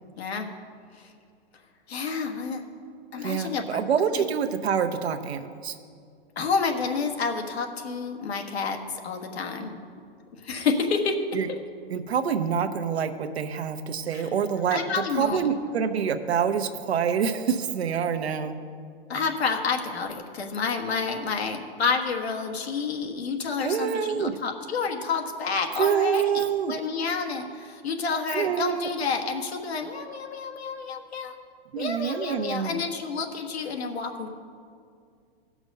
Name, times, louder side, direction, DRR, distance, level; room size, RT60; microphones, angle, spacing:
voice 1, 0.2-0.5 0.9-1.1 1.9-2.6 3.1-3.8 4.2-4.3 6.4-8.8 9.0-9.7 10.3-11.2 11.5-11.6 14.1-14.2 14.7-15.5 19.1-31.4 31.7-34.3, left 5 dB, 80° left, 4 dB, 1.5 m, -29 dB
voice 2, 3.2-5.8 11.3-11.5 11.9-14.8 15.2-18.5 23.6-24.4 25.8-26.7 28.3-28.9 31.7-32.8, right 7 dB, 80° right, 8 dB, 0.9 m, -26 dB
16.0 x 6.1 x 5.3 m, 2.2 s
hypercardioid pair, 125°, 31 cm